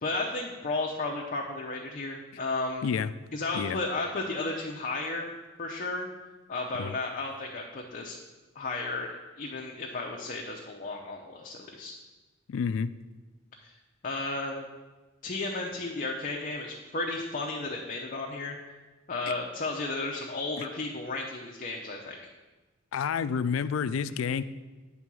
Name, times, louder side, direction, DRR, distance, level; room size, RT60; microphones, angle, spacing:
voice 1, 0.0-2.9 3.3-5.3 5.6-6.1 6.5-8.2 8.5-12.0 13.6-13.8 14.0-14.7 15.2-18.6 19.1-22.2, left 3 dB, 45° left, 0 dB, 0.6 m, -33 dB
voice 2, 12.5-12.9 20.6-20.7 22.9-24.4, left 6 dB, 90° left, 14 dB, 0.4 m, -29 dB
8.6 x 3.7 x 6.1 m, 1.2 s
head